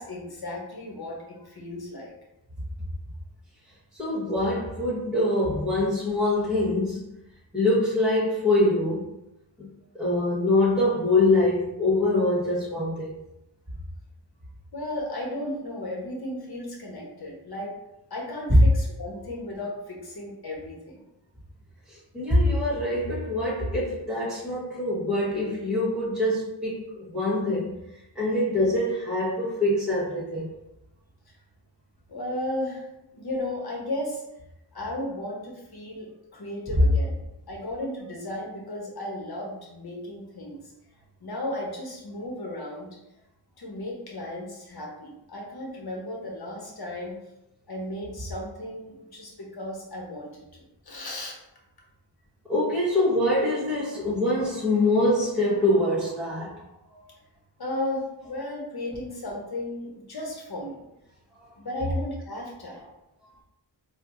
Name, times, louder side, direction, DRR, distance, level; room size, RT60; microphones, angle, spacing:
voice 1, 0.0-2.1 14.7-17.7 18.1-21.0 32.1-34.2 34.7-37.2 37.5-40.6 41.2-43.0 43.6-47.2 47.7-51.4 57.6-60.8 61.6-62.8, left 1 dB, 60° left, -1 dB, 1.1 m, -35 dB
voice 2, 3.9-7.1 7.5-9.2 9.6-9.7 9.9-13.1 21.9-27.8 28.1-30.5 52.5-56.7 56.9-57.0, left 1 dB, ahead, -10 dB, 1.2 m, -24 dB
4.4 x 2.4 x 2.6 m, 0.89 s
cardioid pair, 50°, 43 cm